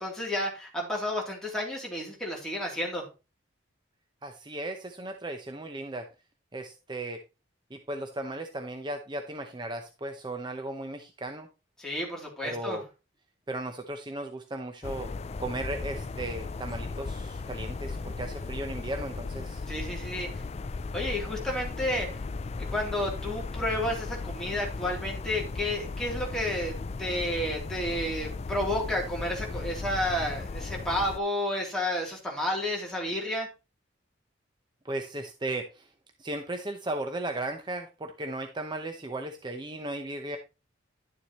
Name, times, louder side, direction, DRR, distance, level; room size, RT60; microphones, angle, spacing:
voice 1, 0.0-3.1 11.8-12.8 19.7-20.4 20.9-22.1 22.6-33.5, left 1 dB, 5° left, -2 dB, 3.1 m, -31 dB
voice 2, 4.2-6.1 6.5-7.2 7.7-11.5 12.4-12.8 13.5-15.1 15.4-19.6 34.8-35.9 36.2-40.4, right 2 dB, 25° right, 5 dB, 0.7 m, -36 dB
sound 1, 14.8-31.2, left 3 dB, 35° left, 0.4 m, -36 dB
11.0 x 7.1 x 3.0 m, 0.29 s
head